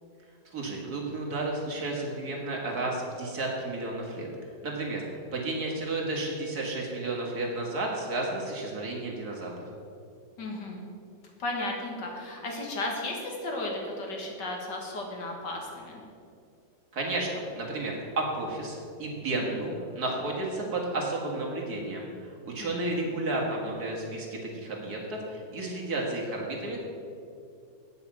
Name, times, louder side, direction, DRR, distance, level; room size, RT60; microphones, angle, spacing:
voice 1, 0.5-4.3 4.6-9.5 16.9-26.8, right 2 dB, 55° right, -2 dB, 2.3 m, -32 dB
voice 2, 10.4-10.8 11.4-16.0 22.6-23.1, left 2 dB, 65° left, 0 dB, 2.3 m, -35 dB
9.1 x 6.9 x 7.2 m, 2.5 s
omnidirectional pair, 2.0 m